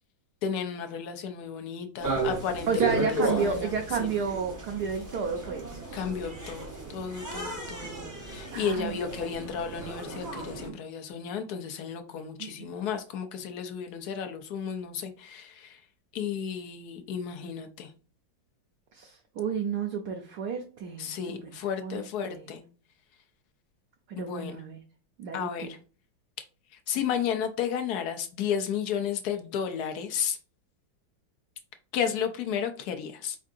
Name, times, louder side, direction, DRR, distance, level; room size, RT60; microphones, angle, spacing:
voice 1, 0.4-3.7 4.0-4.1 5.9-15.8 16.1-17.9 21.0-22.6 24.2-24.6 25.3-25.8 26.9-30.4 31.9-33.4, left 7 dB, 65° left, 1.0 m, -33 dB
sound 1, 2.0-10.7, right 3 dB, 20° right, 0.4 m, -34 dB
voice 2, 2.7-5.8 8.5-9.3 12.4-12.5 18.9-21.5 21.8-22.0 22.3-22.5 24.1-24.8 25.2-25.7, right 6 dB, 70° right, 1.0 m, -31 dB
4.5 x 3.7 x 2.5 m
omnidirectional pair, 2.2 m